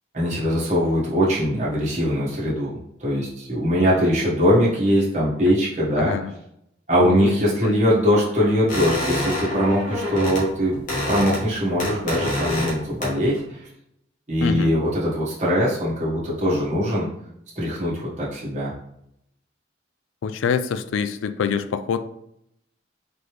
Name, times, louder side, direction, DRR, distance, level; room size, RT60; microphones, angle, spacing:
voice 1, 0.1-2.7 3.0-6.1 6.9-10.7 11.1-13.6 14.3-17.1 17.5-18.7, equal, 40° right, -7 dB, 1.3 m, -21 dB
voice 2, 6.0-6.3 7.0-7.3 7.6-7.8 14.4-14.8 20.2-22.0, left 6 dB, 90° left, 11 dB, 0.3 m, -25 dB
sound 1, 8.7-10.4 10.7-11.5 11.8-12.8 13.0-13.4, left 1 dB, 45° left, 1.4 m, -26 dB
4.0 x 3.4 x 3.1 m, 0.77 s
head